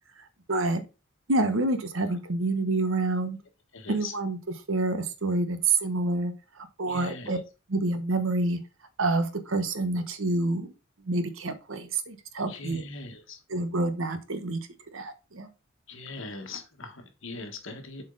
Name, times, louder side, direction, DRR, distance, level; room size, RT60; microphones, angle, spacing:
voice 1, 0.5-0.8 1.3-3.4 3.9-4.4 4.7-7.4 7.7-8.6 9.0-10.7 11.1-12.8 13.5-14.6 14.9-15.5, right 2 dB, 70° right, 9 dB, 1.0 m, -27 dB
voice 2, 3.7-4.1 6.9-7.4 12.4-13.4 15.9-18.0, left 3 dB, 65° left, 5 dB, 1.5 m, -40 dB
7.4 x 4.5 x 3.8 m, 0.30 s
head